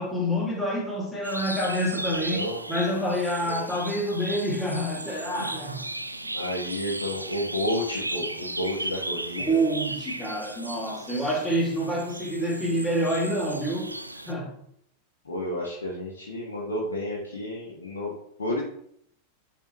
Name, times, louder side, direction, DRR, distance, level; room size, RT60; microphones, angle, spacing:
voice 1, 0.0-5.8 9.4-13.9 14.3-14.5, equal, 5° left, -3 dB, 2.4 m, -27 dB
sound 1, 1.2-14.3, right 1 dB, 85° right, 0.5 m, -36 dB
voice 2, 2.1-2.6 3.4-3.5 6.3-9.6 11.1-11.3 15.2-18.1 18.4-18.6, left 1 dB, 70° left, -4 dB, 1.6 m, -31 dB
10.5 x 4.1 x 3.1 m, 0.69 s
figure-of-eight pair, 90°, 0 cm